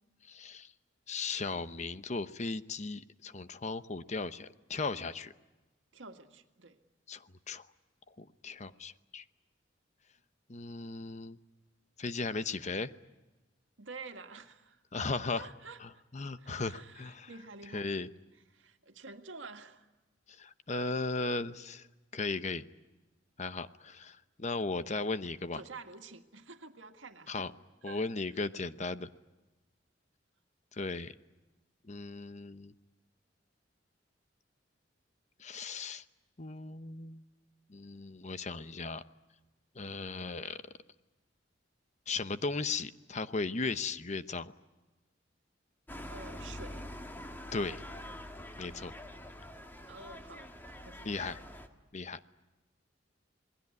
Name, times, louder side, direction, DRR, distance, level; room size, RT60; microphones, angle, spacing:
voice 1, 0.2-0.7 1.1-5.3 7.1-7.7 8.2-9.2 10.5-11.4 12.0-12.9 14.9-15.5 15.8-17.3 17.7-18.1 20.3-21.9 22.1-22.6 23.4-25.6 27.3-27.5 27.8-29.1 30.7-31.1 31.9-32.7 35.4-36.0 36.4-37.2 37.7-39.0 39.7-40.7 42.1-44.5 47.5-47.8 48.6-48.9 51.0-51.4 51.9-52.2, left 3 dB, 40° left, 12 dB, 0.8 m, -37 dB
voice 2, 5.9-6.8 13.8-14.8 15.3-15.8 16.4-17.9 18.5-19.9 25.5-27.5 27.9-28.0 28.3-28.4 46.1-46.9 49.9-50.5 50.8-51.3, right 4 dB, 90° right, 6 dB, 1.9 m, -49 dB
sound 1, 45.9-51.7, left 1 dB, 10° left, 1.7 m, -45 dB
27.0 x 20.0 x 9.6 m, 1.1 s
head